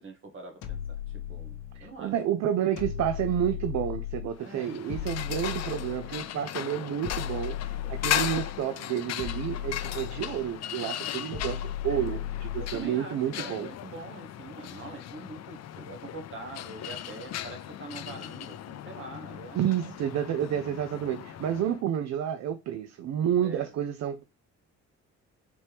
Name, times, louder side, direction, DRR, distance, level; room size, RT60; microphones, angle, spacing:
voice 1, 0.0-2.1 4.4-4.9 7.8-7.9 11.0-11.2 12.6-19.9 20.5-20.6 23.4-23.7, right 3 dB, 40° right, 1.3 m, -44 dB
sound 1, 0.6-1.9 2.8-4.4 4.9-6.3 7.0-8.7 9.2-10.6 11.3-12.9, left 11 dB, 80° left, 0.8 m, -36 dB
voice 2, 1.7-13.7 19.5-24.2, right 10 dB, 60° right, 0.5 m, -30 dB
sound 2, 4.4-21.8, left 11 dB, 60° left, 0.5 m, -37 dB
4.3 x 3.0 x 3.3 m
cardioid pair, 90°, 30 cm